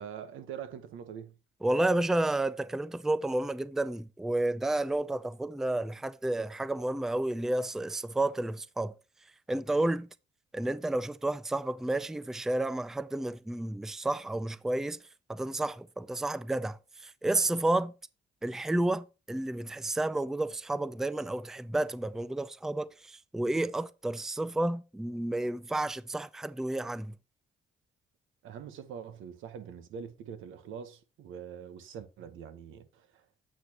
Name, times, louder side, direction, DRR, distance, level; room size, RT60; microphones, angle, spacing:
voice 1, 0.0-1.4 28.4-33.4, right 7 dB, 85° right, 1.0 m, -44 dB
voice 2, 1.6-8.9 9.5-10.1 10.5-15.0 15.3-17.9 18.4-27.1, right 2 dB, ahead, 0.4 m, -31 dB
8.3 x 6.3 x 2.9 m
cardioid pair, 90°, 20 cm